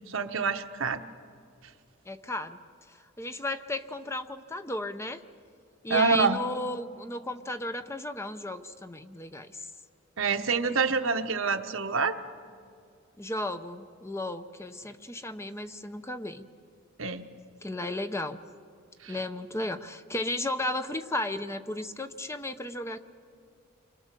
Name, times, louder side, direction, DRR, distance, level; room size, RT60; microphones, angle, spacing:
voice 1, 0.1-1.0 5.9-6.4 10.2-12.2 17.0-17.2 19.0-19.2, right 4 dB, 70° right, 7 dB, 1.1 m, -26 dB
voice 2, 2.1-2.6 2.9-5.2 5.8-9.7 13.2-16.5 17.6-18.4 19.1-23.0, left 1 dB, 15° left, 9 dB, 0.7 m, -34 dB
29.5 x 24.0 x 6.7 m, 2.3 s
head